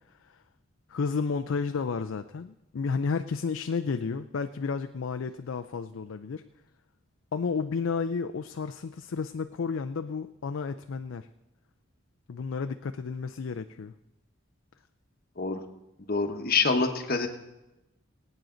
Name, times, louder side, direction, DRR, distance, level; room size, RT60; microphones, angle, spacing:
voice 1, 0.9-6.4 7.3-11.3 12.3-13.9, left 5 dB, 90° left, 9 dB, 0.5 m, -32 dB
voice 2, 16.1-17.3, left 4 dB, 50° left, 6 dB, 1.2 m, -26 dB
20.0 x 9.1 x 3.9 m, 0.98 s
head